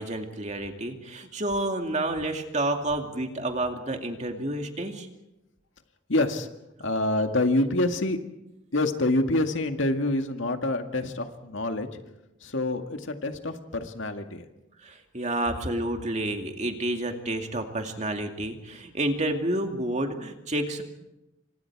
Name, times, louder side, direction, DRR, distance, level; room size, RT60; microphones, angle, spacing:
voice 1, 0.0-5.1 14.8-20.8, right 1 dB, 35° right, 4 dB, 2.4 m, -29 dB
voice 2, 6.1-6.5 6.8-8.2 8.7-11.9 12.4-14.4, left 2 dB, 75° left, 5 dB, 2.0 m, -26 dB
29.0 x 25.5 x 4.8 m, 0.94 s
head